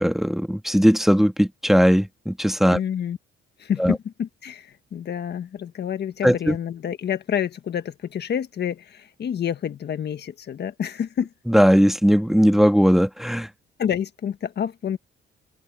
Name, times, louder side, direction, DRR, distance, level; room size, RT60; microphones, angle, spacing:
voice 1, 0.0-2.8 3.8-4.0 6.2-6.6 11.5-13.5, equal, ahead, 1.7 m, -18 dB
voice 2, 2.7-3.2 3.6-11.3 13.8-15.0, left 8 dB, 60° left, 1.6 m, -28 dB
cardioid pair, 90°, 20 cm